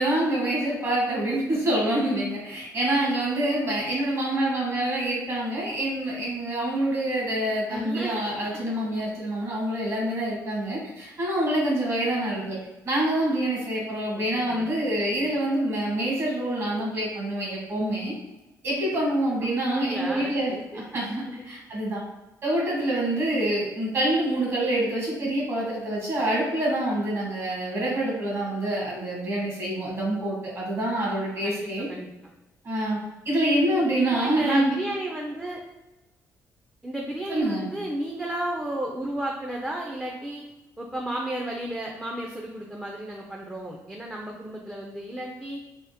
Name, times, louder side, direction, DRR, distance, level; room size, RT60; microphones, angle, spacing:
voice 1, 0.0-12.6 12.8-18.1 18.6-22.0 22.4-31.9 32.6-33.0 33.2-34.7 37.3-37.7, right 1 dB, 45° right, -4 dB, 1.3 m, -26 dB
voice 2, 7.7-8.2 8.5-8.6 14.2-14.7 15.1-15.2 19.7-20.8 21.3-21.4 23.1-23.3 31.4-31.6 31.9-32.1 34.0-35.6 36.8-40.4 40.8-45.6, right 1 dB, 15° right, -1 dB, 0.4 m, -33 dB
3.4 x 2.1 x 2.8 m, 1.1 s
cardioid pair, 100°, 7 cm